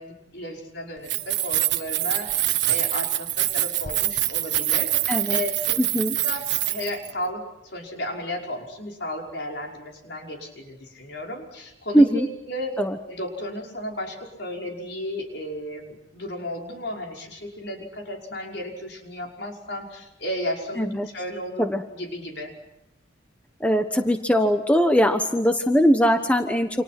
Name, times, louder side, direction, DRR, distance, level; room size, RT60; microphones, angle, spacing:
voice 1, 0.0-2.4 2.6-4.9 5.3-5.8 6.2-12.7 13.0-22.5, left 1 dB, 60° left, 1 dB, 5.7 m, -34 dB
Keys jangling, 1.0-7.1, right 14 dB, 65° right, 1.4 m, -25 dB
voice 2, 5.1-5.4 5.9-6.1 11.9-12.3 12.8-13.0 20.8-21.1 21.6-21.8 23.6-26.7, equal, 5° left, 6 dB, 1.2 m, -20 dB
29.5 x 27.5 x 6.1 m, 0.85 s
head